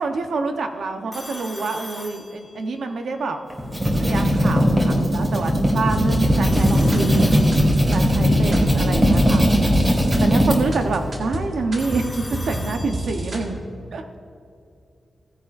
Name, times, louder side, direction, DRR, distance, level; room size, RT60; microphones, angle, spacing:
voice 1, 0.0-3.4 4.0-7.4 7.9-9.5 10.2-13.6 13.9-14.2, right 3 dB, 75° right, 5 dB, 0.9 m, -27 dB
Telephone, 1.1-2.9 6.4-8.1 11.8-13.5, left 1 dB, 15° left, 1.6 m, -39 dB
sound 1, 3.5-10.6, equal, 15° right, 2.0 m, -18 dB
sound 2, 5.8-13.5, right 1 dB, 45° right, 1.8 m, -31 dB
16.5 x 10.0 x 2.6 m, 2.5 s
wide cardioid pair, 165°, 0 cm